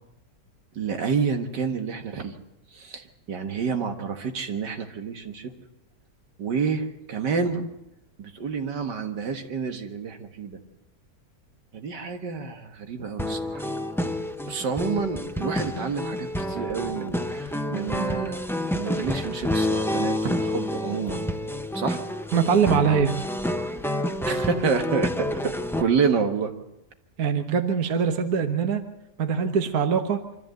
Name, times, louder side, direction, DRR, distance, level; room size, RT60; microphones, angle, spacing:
voice 1, 0.8-2.3 2.7-5.5 6.4-7.7 8.2-10.6 11.7-13.7 14.5-21.3 21.7-22.0 24.3-25.5 25.8-26.5, right 5 dB, 80° right, 5 dB, 2.2 m, -29 dB
sound 1, 13.2-25.8, left 1 dB, 5° left, 0.3 m, -29 dB
voice 2, 22.3-23.2 27.2-28.8 29.2-30.2, right 6 dB, 60° right, 6 dB, 1.7 m, -22 dB
25.0 x 14.0 x 7.8 m, 0.91 s
omnidirectional pair, 1.9 m